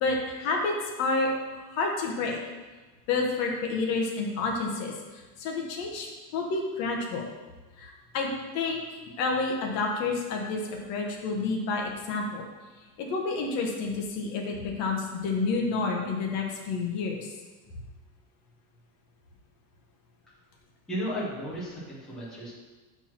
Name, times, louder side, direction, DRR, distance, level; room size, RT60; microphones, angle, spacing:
voice 1, 0.0-2.4 3.1-7.3 7.8-8.3 8.5-12.4 13.0-17.3, left 3 dB, 35° left, 0 dB, 1.0 m, -29 dB
voice 2, 20.9-22.5, equal, ahead, -8 dB, 0.3 m, -34 dB
5.8 x 4.7 x 5.7 m, 1.2 s
cardioid pair, 180°, 46 cm